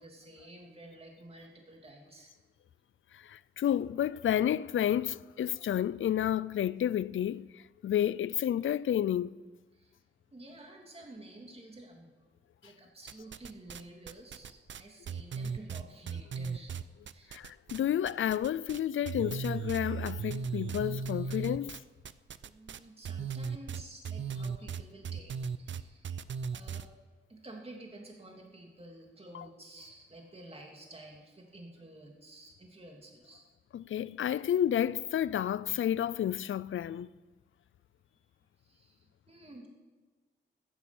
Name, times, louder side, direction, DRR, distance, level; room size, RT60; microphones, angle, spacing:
voice 1, 0.0-2.3 9.7-10.0 10.3-12.3 12.6-16.7 17.1-17.3 20.6-20.8 22.4-26.2 26.5-26.9 27.3-33.4 38.1-38.3 38.6-39.7, right 1 dB, 30° right, 2.8 m, -51 dB
voice 2, 3.1-9.4 17.3-21.8 29.3-29.4 33.7-37.1, left 10 dB, 80° left, 0.4 m, -31 dB
sound 1, 13.1-13.8 14.1-17.8 18.0-18.8 19.0-26.9, right 6 dB, 70° right, 0.5 m, -37 dB
14.0 x 10.5 x 7.1 m
wide cardioid pair, 95°, 20 cm